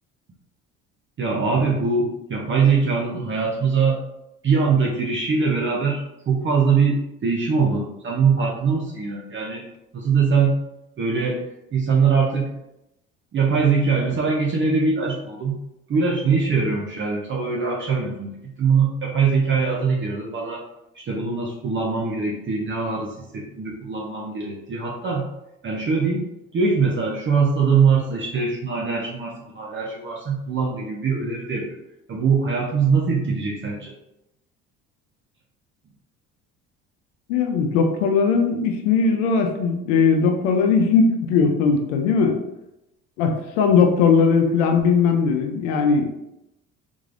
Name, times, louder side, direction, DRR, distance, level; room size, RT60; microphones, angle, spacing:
voice 1, 1.2-4.0 4.4-9.7 9.9-10.6 11.0-11.4 11.7-12.5 13.3-15.6 15.9-20.6 20.9-25.3 25.6-26.2 26.5-31.8 32.1-33.9, right 5 dB, 35° right, -2 dB, 0.7 m, -22 dB
voice 2, 37.3-42.4 43.2-46.1, left 5 dB, 85° left, 4 dB, 0.6 m, -19 dB
3.6 x 3.2 x 2.5 m, 0.87 s
supercardioid pair, 75°, 34 cm